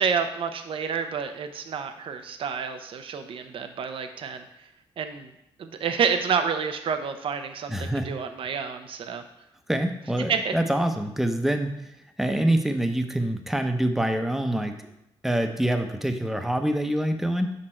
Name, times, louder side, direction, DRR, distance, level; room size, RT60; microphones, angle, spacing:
voice 1, 0.0-4.4 5.0-5.3 5.6-9.2 10.3-10.5, right 6 dB, 65° right, 7 dB, 0.7 m, -29 dB
voice 2, 7.7-8.1 9.7-11.8 12.2-14.7 15.2-17.5, right 1 dB, 5° right, 6 dB, 0.7 m, -25 dB
6.4 x 5.0 x 4.4 m, 0.84 s
cardioid pair, 80°, 10 cm